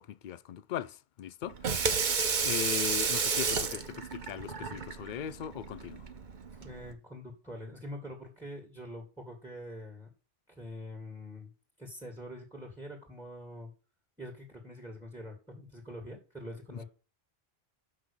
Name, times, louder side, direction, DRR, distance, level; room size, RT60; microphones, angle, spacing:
voice 1, 0.0-1.9 2.4-6.0 16.7-16.8, left 10 dB, 55° left, 0.6 m, -39 dB
Water tap faucet / Sink (filling or washing), 1.4-6.9, right 5 dB, 50° right, 1.0 m, -32 dB
voice 2, 6.6-10.1 10.5-11.5 11.8-13.7 14.2-16.8, left 1 dB, 5° right, 2.2 m, -44 dB
6.5 x 6.0 x 6.9 m
omnidirectional pair, 1.1 m